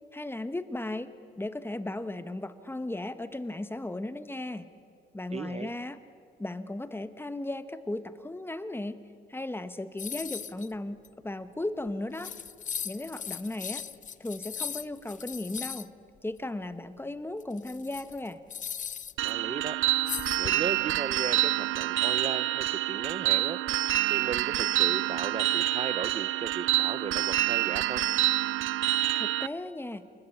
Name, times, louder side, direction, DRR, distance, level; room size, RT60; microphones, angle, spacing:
voice 1, 0.1-4.7 5.1-6.0 6.4-9.0 9.3-12.3 12.8-13.8 14.2-15.9 16.2-18.4 29.1-30.1, left 2 dB, 10° left, 12 dB, 1.2 m, -36 dB
voice 2, 5.3-5.7 19.2-19.8 20.4-23.6 24.1-28.0, right 5 dB, 30° right, 14 dB, 0.7 m, -36 dB
sound 1, 10.0-10.7 11.0-11.1 11.9-12.0 12.1-15.9 17.4-19.3 20.1-20.8, left 8 dB, 40° left, 0.6 m, -38 dB
sound 2, 19.2-29.5, right 16 dB, 80° right, 0.6 m, -27 dB
28.5 x 20.0 x 8.6 m, 2.3 s
cardioid pair, 90°, 20 cm